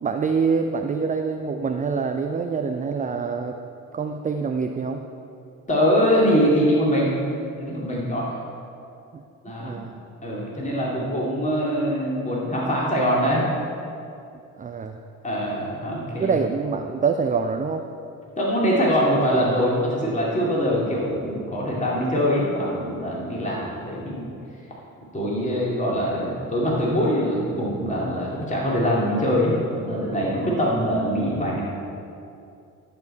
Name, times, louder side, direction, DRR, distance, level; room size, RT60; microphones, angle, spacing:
voice 1, 0.0-3.6 3.9-5.1 9.1-9.2 9.6-9.9 14.6-15.0 16.2-17.9 23.5-23.6, right 5 dB, 20° right, 5 dB, 0.5 m, -25 dB
voice 2, 5.7-7.2 7.6-8.3 9.4-9.8 10.2-13.5 15.2-16.3 18.4-24.3 25.1-31.6, equal, 15° left, -5 dB, 2.4 m, -23 dB
12.0 x 6.9 x 4.3 m, 2.6 s
figure-of-eight pair, 50°, 42 cm